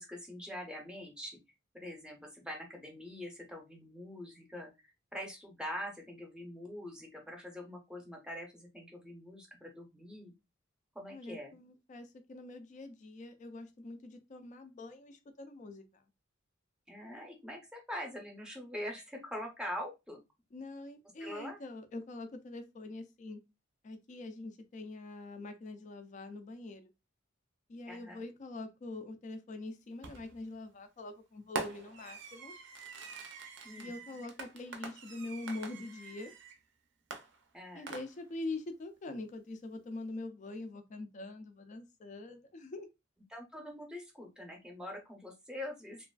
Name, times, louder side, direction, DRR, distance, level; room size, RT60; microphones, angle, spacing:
voice 1, 0.0-1.4 1.7-4.7 5.1-10.3 10.9-11.5 16.9-20.2 21.2-21.6 27.9-28.2 33.6-33.9 37.5-37.9 43.3-46.1, left 1 dB, 5° right, 0.6 m, -44 dB
voice 2, 11.1-16.0 20.5-23.4 23.8-26.9 27.7-32.5 33.8-36.3 37.7-42.9, left 2 dB, 40° left, 0.4 m, -44 dB
Fireworks, 30.0-30.4 31.6-36.6 37.1-38.4, right 4 dB, 65° right, 0.5 m, -44 dB
2.9 x 2.4 x 2.3 m
head